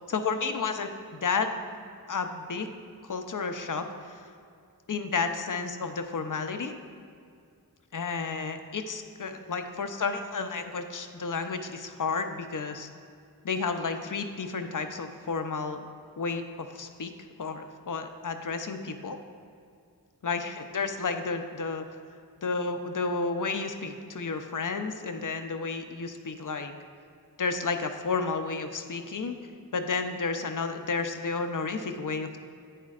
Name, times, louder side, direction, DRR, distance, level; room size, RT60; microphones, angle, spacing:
voice 1, 0.1-1.6 2.1-2.7 3.1-4.2 4.9-6.7 7.9-12.9 13.4-15.8 16.2-17.1 17.4-19.2 20.2-21.9 22.4-26.7 27.4-29.4 29.7-32.4, left 4 dB, 55° left, 7 dB, 0.6 m, -31 dB
10.0 x 8.7 x 2.4 m, 2.3 s
wide cardioid pair, 55°, 37 cm